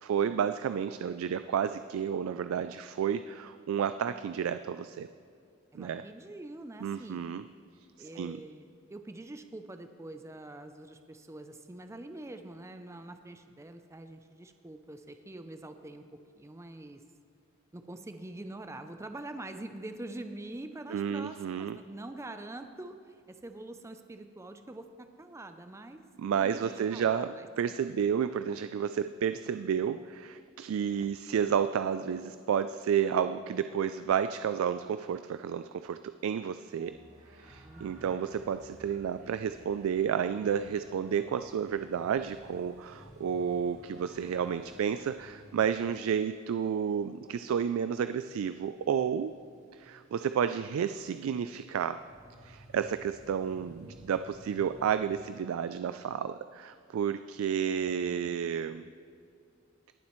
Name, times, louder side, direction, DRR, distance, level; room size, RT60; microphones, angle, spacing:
voice 1, 0.0-5.1 5.7-6.0 6.8-7.4 8.0-8.4 20.9-21.8 26.2-27.3 27.6-37.0 37.4-49.3 49.7-52.0 52.4-58.8, right 8 dB, 85° right, 11 dB, 0.3 m, -31 dB
voice 2, 5.7-7.2 8.0-16.0 16.3-17.0 17.7-27.5 37.6-38.2 53.6-54.1, right 2 dB, 15° right, 7 dB, 0.4 m, -45 dB
sound 1, 36.8-45.8 47.9-55.0, right 1 dB, 35° right, 2.4 m, -55 dB
21.0 x 7.3 x 3.1 m, 2.4 s
head